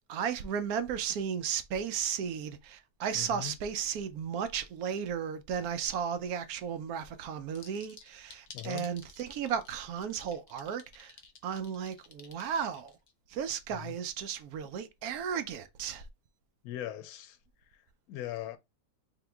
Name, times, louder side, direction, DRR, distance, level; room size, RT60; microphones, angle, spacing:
voice 1, 0.1-11.1 11.4-12.9 13.3-16.0, right 7 dB, 75° right, 1.1 m, -34 dB
voice 2, 3.1-3.5 8.5-8.9 13.7-14.0 16.6-17.4 17.7-17.8 18.1-18.6, left 13 dB, 75° left, 1.0 m, -40 dB
sound 1, 7.5-13.1, left 5 dB, 50° left, 0.8 m, -51 dB
3.7 x 2.9 x 3.4 m
omnidirectional pair, 1.6 m